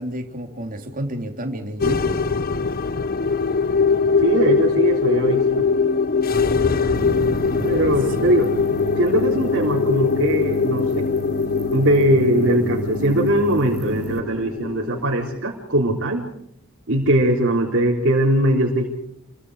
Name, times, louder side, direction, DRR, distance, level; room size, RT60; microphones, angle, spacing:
voice 1, 0.0-2.2, equal, 40° right, 4 dB, 3.4 m, -30 dB
sound 1, 1.8-15.4, left 5 dB, 45° left, 0.8 m, -22 dB
voice 2, 4.2-5.7 7.6-8.5 9.0-11.1 11.7-16.3 16.9-18.9, right 1 dB, 55° right, -2 dB, 3.8 m, -20 dB
sound 2, 6.9-14.2, right 3 dB, 75° right, 1.6 m, -33 dB
28.5 x 24.0 x 4.9 m, 0.74 s
head